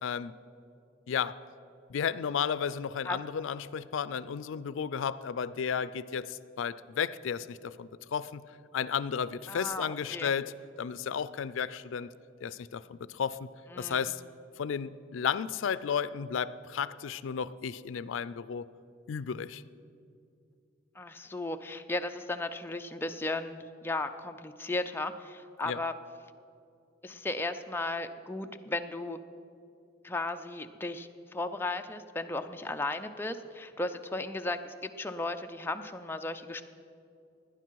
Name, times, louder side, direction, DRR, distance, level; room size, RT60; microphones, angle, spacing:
voice 1, 0.0-0.3 1.1-1.4 1.9-8.4 8.7-12.1 12.4-13.5 13.8-14.2 14.6-18.7 19.1-19.6 25.6-25.8, left 7 dB, 80° left, 16 dB, 0.4 m, -33 dB
voice 2, 9.5-10.3 13.7-14.1 21.0-25.9 27.0-29.2 30.0-36.6, left 2 dB, 10° left, 6 dB, 0.4 m, -35 dB
17.5 x 10.0 x 4.6 m, 2.6 s
head